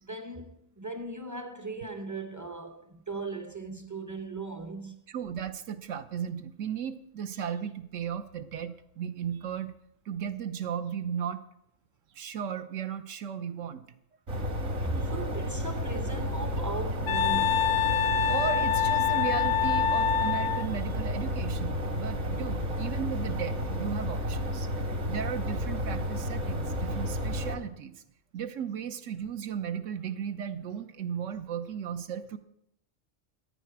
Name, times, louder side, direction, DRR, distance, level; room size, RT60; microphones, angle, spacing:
voice 1, 0.0-5.0 14.8-17.9, right 3 dB, 25° right, 0.4 m, -38 dB
voice 2, 5.1-9.7 10.1-11.4 12.1-13.8 15.0-15.1 18.3-24.7 25.1-27.9 28.3-32.4, right 8 dB, 85° right, 1.1 m, -35 dB
sound 1, 14.3-27.5, equal, 65° right, 2.0 m, -32 dB
Wind instrument woodwind instrument, 17.1-20.7, left 8 dB, 85° left, 1.0 m, -26 dB
15.0 x 9.3 x 4.6 m
omnidirectional pair, 1.3 m